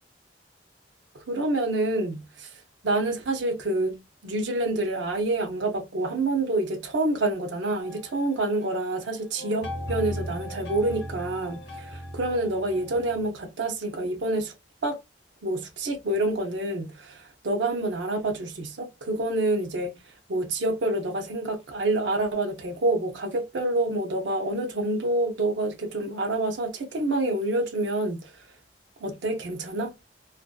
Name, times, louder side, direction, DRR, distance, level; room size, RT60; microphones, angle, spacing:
voice 1, 1.1-14.5 14.8-15.0 15.4-28.5 29.0-29.9, right 2 dB, 80° right, 0.6 m, -27 dB
sound 1, 7.8-9.0 9.4-13.3, equal, 65° left, 0.7 m, -38 dB
2.4 x 2.2 x 2.3 m
head